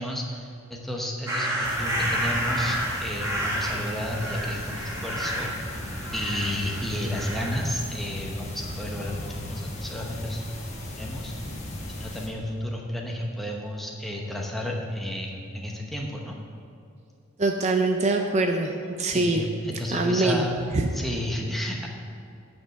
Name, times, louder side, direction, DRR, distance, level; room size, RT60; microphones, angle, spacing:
voice 1, 0.0-5.5 6.1-10.7 10.9-11.3 11.9-16.4 19.1-20.6 20.9-21.9, left 1 dB, ahead, -1 dB, 0.9 m, -32 dB
sound 1, 1.3-7.6, right 1 dB, 15° right, 1.5 m, -30 dB
sound 2, 1.6-12.3, left 1 dB, 30° left, 1.3 m, -37 dB
voice 2, 17.4-19.5 19.9-20.4 20.7-20.9, right 2 dB, 35° right, 4 dB, 0.5 m, -23 dB
9.6 x 5.3 x 6.9 m, 2.5 s
head